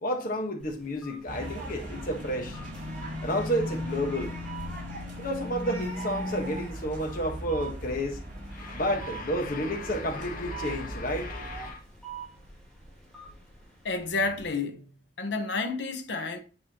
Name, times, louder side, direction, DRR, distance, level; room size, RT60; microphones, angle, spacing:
voice 1, 0.0-2.6 3.2-4.3 5.2-8.2 8.5-11.8, equal, 55° left, 1.4 m, -31 dB
sound 1, 0.6-14.5, right 5 dB, ahead, 3.5 m, -47 dB
sound 2, 1.3-11.7, equal, 50° right, 2.7 m, -38 dB
voice 2, 13.8-14.9 15.2-16.4, left 3 dB, 85° left, 1.0 m, -30 dB
8.0 x 4.7 x 3.0 m
head